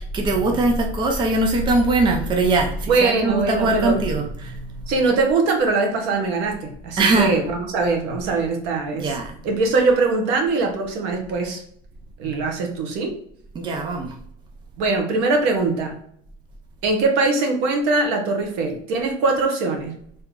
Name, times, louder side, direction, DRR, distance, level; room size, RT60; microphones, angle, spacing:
voice 1, 0.1-4.9 7.0-7.3 9.0-9.4 13.5-14.1, right 2 dB, 25° right, 2 dB, 0.6 m, -21 dB
voice 2, 2.9-4.0 4.9-9.1 9.4-11.6 12.2-13.1 14.8-15.9 16.8-19.9, right 3 dB, 75° right, 4 dB, 1.0 m, -21 dB
3.4 x 2.8 x 3.7 m, 0.66 s
cardioid pair, 140°, 17 cm